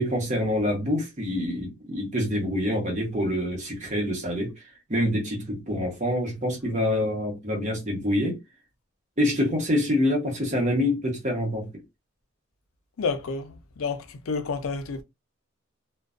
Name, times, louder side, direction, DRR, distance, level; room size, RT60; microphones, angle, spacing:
voice 1, 0.0-8.4 9.2-11.7, left 1 dB, 35° right, 1.0 m, -26 dB
voice 2, 13.0-15.0, left 4 dB, 90° left, 0.5 m, -30 dB
2.4 x 2.2 x 2.4 m
head